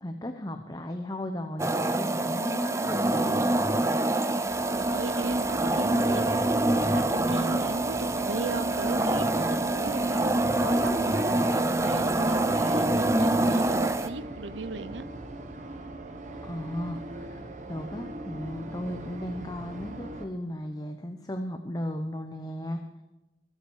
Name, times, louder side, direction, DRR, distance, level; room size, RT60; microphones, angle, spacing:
voice 1, 0.0-3.5 16.4-23.0, left 1 dB, 20° left, 0.8 m, -36 dB
sound 1, 1.6-14.1, right 2 dB, 15° right, 0.6 m, -25 dB
sound 2, 4.5-20.2, right 1 dB, 40° right, 1.3 m, -41 dB
voice 2, 4.7-15.1, right 3 dB, 90° right, 0.8 m, -37 dB
23.5 x 8.5 x 4.8 m
head